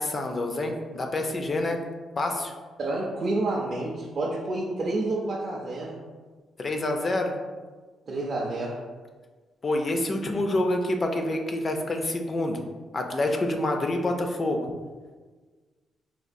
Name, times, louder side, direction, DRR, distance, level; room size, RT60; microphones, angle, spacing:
voice 1, 0.0-1.8 2.2-2.5 6.6-7.3 9.6-12.6 12.9-14.6, left 1 dB, 30° left, 4 dB, 0.3 m, -27 dB
voice 2, 2.8-6.0 8.1-8.8, right 2 dB, 40° right, -3 dB, 0.4 m, -29 dB
4.2 x 2.2 x 2.5 m, 1.4 s
cardioid pair, 135°, 0 cm